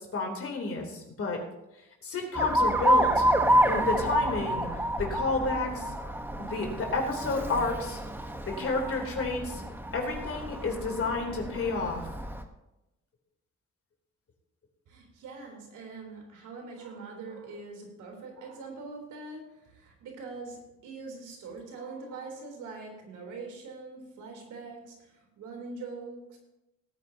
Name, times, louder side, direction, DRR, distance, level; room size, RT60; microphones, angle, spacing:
voice 1, 0.0-1.4 2.0-3.2 3.7-4.7 5.0-5.9 6.4-8.0 8.5-9.6 9.9-12.1, left 3 dB, 50° left, 1 dB, 3.5 m, -30 dB
Alarm, 2.3-12.4, right 1 dB, 5° right, 1.2 m, -28 dB
voice 2, 14.9-26.4, right 3 dB, 80° right, 1 dB, 3.7 m, -43 dB
18.5 x 9.2 x 2.9 m, 0.92 s
cardioid pair, 90°, 30 cm